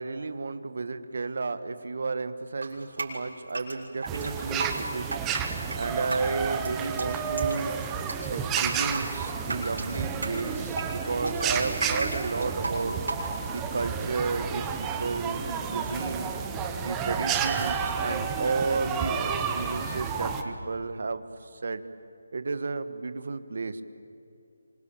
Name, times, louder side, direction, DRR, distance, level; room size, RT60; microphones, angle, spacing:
voice 1, 0.0-5.1 5.7-7.7 8.3-13.0 13.5-16.3 16.8-21.8 22.3-23.8, right 3 dB, 45° right, 11 dB, 1.4 m, -32 dB
Drip, 2.6-13.6, right 2 dB, 70° right, 7.2 m, -35 dB
sound 1, 4.1-20.4, right 7 dB, 5° right, 0.8 m, -31 dB
sound 2, 9.0-20.7, equal, 30° left, 2.9 m, -44 dB
26.5 x 25.0 x 8.8 m, 2.8 s
hypercardioid pair, 180°, 0 cm